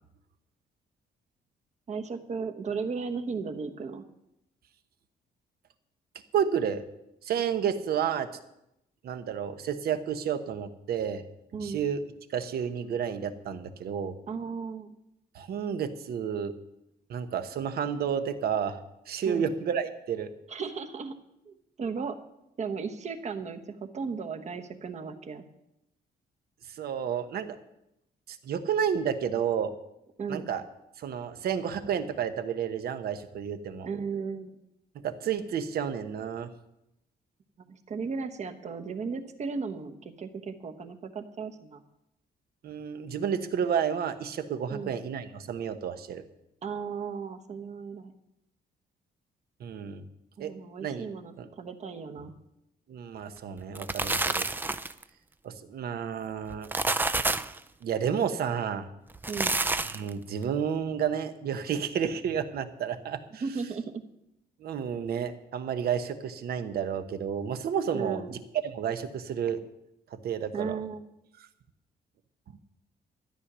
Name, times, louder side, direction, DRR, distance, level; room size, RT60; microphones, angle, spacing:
voice 1, 1.9-4.0 11.5-11.8 14.3-15.0 19.3-19.5 20.5-21.2 21.4-22.2 22.6-25.4 30.2-30.5 33.8-34.6 37.7-41.8 44.7-44.9 46.6-48.1 50.4-52.3 59.3-59.6 63.4-64.0 67.9-68.3 70.5-71.0, right 5 dB, 40° right, 7 dB, 1.2 m, -35 dB
voice 2, 6.3-6.8 7.2-8.3 9.0-11.2 11.6-12.0 12.3-14.2 15.3-16.5 17.1-18.8 19.1-20.3 26.7-27.6 28.3-29.7 30.3-30.6 31.0-33.9 35.0-36.5 42.6-46.2 49.6-50.0 50.4-50.5 50.8-51.1 51.4-51.5 52.9-54.4 55.4-56.7 57.8-58.9 59.8-63.4 64.6-68.2 68.6-69.6 70.1-70.8, right 8 dB, 65° right, 9 dB, 1.1 m, -31 dB
sound 1, 53.6-55.0 56.5-57.6 59.1-60.1, right 2 dB, 10° right, 0.4 m, -28 dB
13.0 x 9.9 x 6.2 m, 0.86 s
cardioid pair, 135°, 17 cm